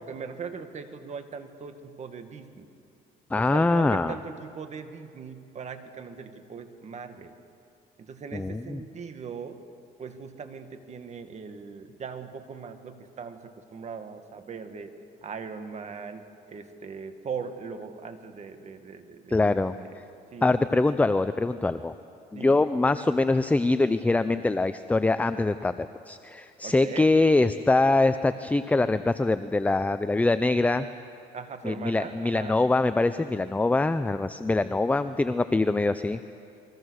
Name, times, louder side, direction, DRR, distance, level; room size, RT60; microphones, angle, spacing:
voice 1, 0.0-2.7 3.4-7.4 8.0-9.6 10.0-14.9 15.2-20.0 20.3-20.8 22.3-22.7 26.6-27.1 31.3-32.6, right 5 dB, 40° right, 7 dB, 2.0 m, -40 dB
voice 2, 3.3-4.2 8.3-8.8 19.3-19.7 20.4-21.9 22.3-30.9 31.6-36.2, left 2 dB, 10° left, 12 dB, 0.5 m, -24 dB
28.5 x 22.5 x 6.5 m, 2.5 s
cardioid pair, 110°, 17 cm